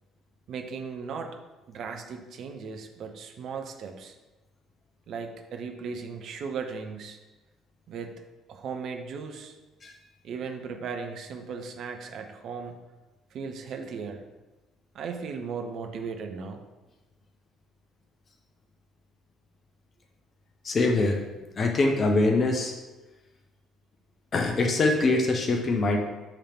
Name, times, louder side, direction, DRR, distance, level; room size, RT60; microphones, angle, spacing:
voice 1, 0.5-1.4 1.7-4.1 5.1-7.2 7.9-8.1 8.5-9.6 10.2-12.8 13.3-14.2 14.9-16.6, right 5 dB, 50° right, 5 dB, 0.6 m, -37 dB
voice 2, 20.6-21.2 21.6-22.7 24.3-26.0, left 2 dB, 35° left, 2 dB, 0.8 m, -23 dB
5.9 x 3.3 x 5.7 m, 1.1 s
figure-of-eight pair, 50°, 0 cm